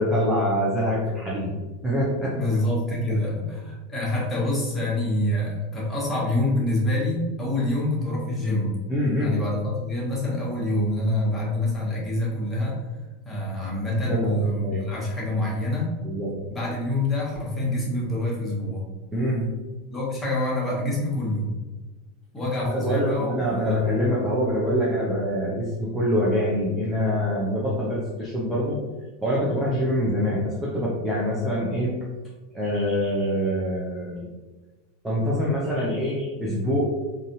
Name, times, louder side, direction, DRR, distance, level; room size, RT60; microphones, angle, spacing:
voice 1, 0.0-1.5 1.8-2.3 8.9-9.4 14.1-14.4 14.6-14.8 16.0-16.3 19.1-19.5 22.6-28.8 29.2-31.9 32.5-34.3 35.0-36.8, equal, 10° right, -7 dB, 0.8 m, -25 dB
voice 2, 2.3-8.8 9.2-12.8 13.2-15.9 16.5-18.9 19.9-21.5 22.3-23.4 23.6-23.8, left 1 dB, 15° left, -5 dB, 1.4 m, -26 dB
4.0 x 2.7 x 2.6 m, 1.2 s
figure-of-eight pair, 85°, 0 cm